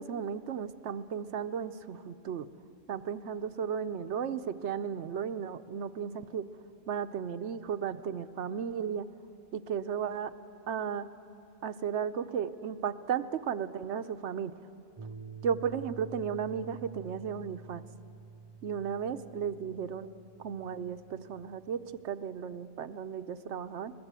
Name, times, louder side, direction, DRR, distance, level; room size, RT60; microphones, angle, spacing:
voice 1, 0.0-2.5 2.9-6.4 6.9-9.1 9.5-10.3 10.7-11.1 11.6-14.5 15.4-17.8 18.6-20.1 20.4-23.9, right 7 dB, 75° right, 11 dB, 1.0 m, -35 dB
sound 1, 15.0-22.0, right 5 dB, 50° right, 0.3 m, -49 dB
21.0 x 21.0 x 8.1 m, 2.6 s
omnidirectional pair, 1.2 m